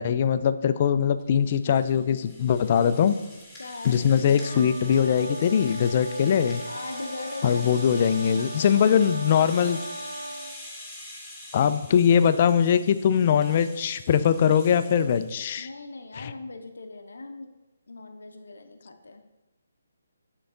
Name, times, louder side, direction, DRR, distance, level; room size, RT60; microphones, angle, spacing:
voice 1, 0.0-3.2 3.8-6.6 7.4-9.8 11.5-15.7 16.1-16.3, left 8 dB, 40° left, 12 dB, 0.3 m, -21 dB
Rattle (instrument), 1.2-15.4, left 1 dB, ahead, 1.6 m, -44 dB
voice 2, 3.6-4.0 6.7-7.6 8.4-8.7 15.6-17.5 17.9-19.2, left 3 dB, 75° left, 5 dB, 0.6 m, -40 dB
sound 1, 4.3-10.6, right 1 dB, 80° right, 0.6 m, -38 dB
6.8 x 3.9 x 3.7 m, 1.0 s
figure-of-eight pair, 150°, 0 cm